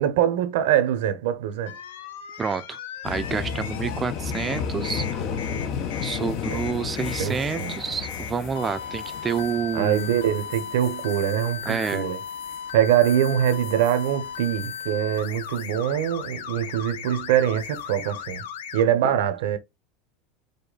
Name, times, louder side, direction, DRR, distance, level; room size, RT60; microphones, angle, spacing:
voice 1, 0.0-1.7 7.2-7.8 9.7-12.2 12.7-18.4 18.7-19.6, right 10 dB, 75° right, 0.9 m, -23 dB
sound 1, 1.7-4.0 4.3-18.8, left 8 dB, 85° left, 0.8 m, -37 dB
voice 2, 2.4-2.8 3.0-5.3 6.0-10.0 11.7-12.1 19.1-19.2, right 6 dB, 20° right, 0.6 m, -29 dB
sound 2, 3.0-14.9 15.2-15.7 17.6-17.9, left 7 dB, 55° left, 0.9 m, -34 dB
5.2 x 2.2 x 4.0 m
supercardioid pair, 120°, 0 cm